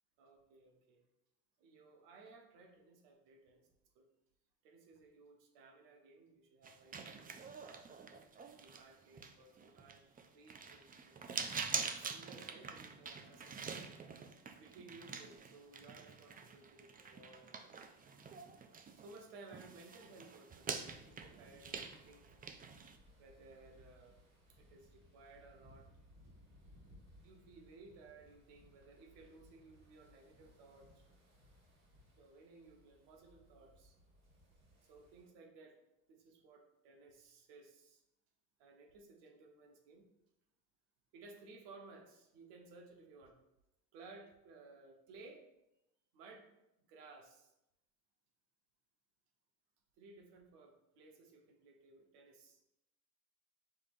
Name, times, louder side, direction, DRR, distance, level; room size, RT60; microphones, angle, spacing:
voice 1, 0.2-1.0 1.6-3.7 3.9-4.0 4.6-7.8 8.6-11.4 11.7-13.8 14.4-17.8 19.0-22.3 23.2-24.1 24.5-25.9 27.2-31.0 32.2-34.0 34.8-35.8 36.1-38.0 38.6-40.0 41.1-43.4 43.9-45.5 46.1-46.5 46.9-47.5 50.0-52.6, right 3 dB, 70° right, 3 dB, 1.1 m, -59 dB
sound 1, 6.6-19.2 19.5-23.0, right 5 dB, 20° right, 0.4 m, -46 dB
sound 2, 20.9-35.3, equal, 35° right, 1.6 m, -64 dB
5.7 x 3.4 x 2.5 m, 0.86 s
hypercardioid pair, 70°, 43 cm